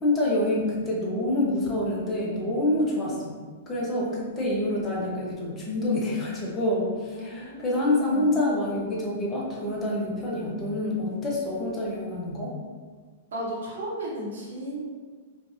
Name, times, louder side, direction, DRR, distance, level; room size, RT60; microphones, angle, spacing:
voice 1, 0.0-3.3 3.7-12.5, left 1 dB, 20° left, -4 dB, 1.0 m, -27 dB
voice 2, 7.1-8.4 13.3-14.8, right 1 dB, 65° right, -5 dB, 1.2 m, -35 dB
4.4 x 2.6 x 2.7 m, 1.5 s
figure-of-eight pair, 105°, 0 cm